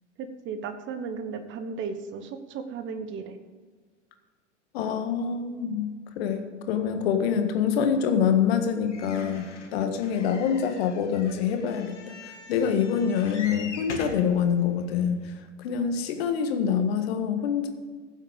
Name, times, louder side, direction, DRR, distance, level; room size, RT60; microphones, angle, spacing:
voice 1, 0.2-3.4, right 5 dB, 30° right, 9 dB, 1.3 m, -35 dB
voice 2, 4.7-5.9 6.2-15.3 15.6-17.7, left 7 dB, 55° left, 7 dB, 1.7 m, -26 dB
sound 1, 8.9-14.3 15.0-15.1 15.3-15.4, left 3 dB, 70° left, 2.4 m, -42 dB
15.5 x 7.6 x 5.2 m, 1.5 s
figure-of-eight pair, 90°, 37 cm